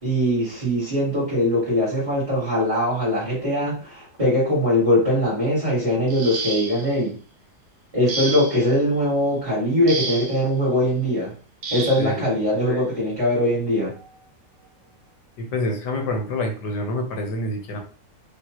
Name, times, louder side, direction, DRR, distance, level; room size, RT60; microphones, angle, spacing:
voice 1, 0.0-7.2 7.9-11.3 11.7-13.9, equal, 20° right, -9 dB, 2.1 m, -21 dB
sound 1, 6.1-7.0 8.1-8.7 9.9-10.4 11.6-12.1 13.3-13.4 14.0-14.2, right 4 dB, 60° right, 1.1 m, -30 dB
voice 2, 15.4-17.8, left 1 dB, 85° left, 3 dB, 1.7 m, -27 dB
5.6 x 2.8 x 3.0 m, 0.37 s
omnidirectional pair, 1.8 m